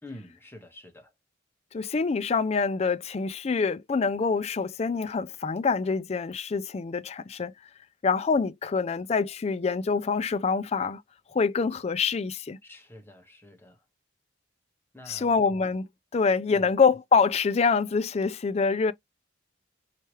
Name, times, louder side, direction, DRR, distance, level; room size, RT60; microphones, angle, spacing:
voice 1, 0.0-1.1 12.6-13.8 14.9-15.4 16.5-16.8, left 1 dB, 10° left, 1.2 m, -47 dB
voice 2, 1.7-7.5 8.0-11.0 11.3-12.6 15.1-15.9 16.1-18.9, left 5 dB, 30° left, 0.3 m, -25 dB
4.6 x 2.9 x 3.0 m
head